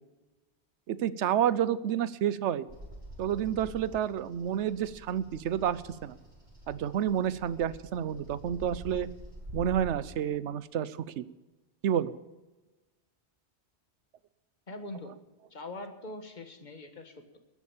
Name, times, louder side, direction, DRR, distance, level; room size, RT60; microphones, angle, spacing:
voice 1, 0.9-2.7 3.2-6.1 6.7-9.1 9.5-11.2 11.8-12.2, right 9 dB, 90° right, 17 dB, 1.0 m, -29 dB
Bird vocalization bird call bird song, 2.7-10.0, right 1 dB, 60° right, 6.6 m, -46 dB
voice 2, 14.7-15.1 15.5-17.4, left 2 dB, 45° left, 7 dB, 1.6 m, -42 dB
14.5 x 11.0 x 7.2 m, 1.2 s
omnidirectional pair, 1.1 m